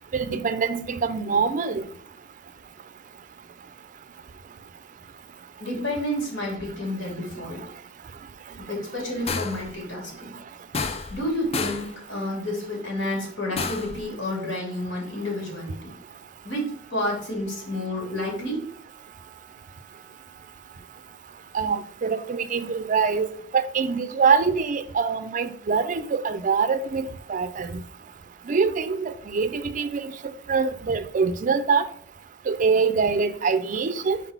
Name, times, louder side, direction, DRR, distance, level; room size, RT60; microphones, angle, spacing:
voice 1, 0.1-1.9 21.5-23.3 23.5-27.8 28.5-31.9 32.5-34.2, right 5 dB, 45° right, 0.4 m, -24 dB
voice 2, 5.6-7.6 8.6-10.3 11.1-15.9 16.4-16.6 16.9-18.6, left 1 dB, 75° left, 2.7 m, -30 dB
sound 1, 9.3-9.7 10.7-11.3 11.5-11.9 13.6-14.0, left 4 dB, 30° left, 0.4 m, -29 dB
4.7 x 4.0 x 5.6 m
head